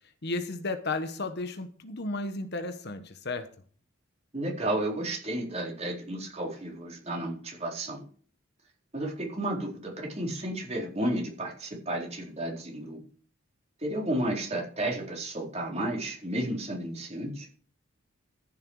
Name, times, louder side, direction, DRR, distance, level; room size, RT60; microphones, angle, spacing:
voice 1, 0.2-3.5, left 2 dB, 50° left, 9 dB, 1.2 m, -33 dB
voice 2, 4.3-8.0 8.9-13.0 13.8-17.5, right 1 dB, 30° right, -1 dB, 4.2 m, -32 dB
14.5 x 7.5 x 4.8 m, 0.42 s
head